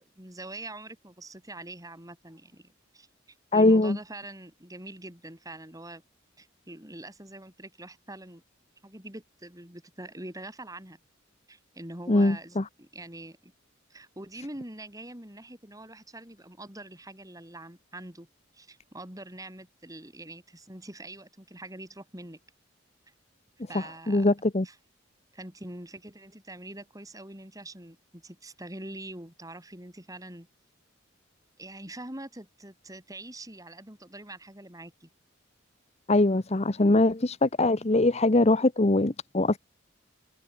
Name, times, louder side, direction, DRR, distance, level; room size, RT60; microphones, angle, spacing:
voice 1, 0.0-6.0 6.4-8.4 8.8-11.0 11.5-13.5 13.9-18.3 18.5-22.4 23.7-24.3 24.6-24.8 25.3-30.5 31.6-35.1, right 1 dB, 15° right, 4.9 m, -44 dB
voice 2, 3.5-4.0 12.1-12.6 24.1-24.7 36.1-39.6, left 2 dB, 30° left, 0.9 m, -22 dB
head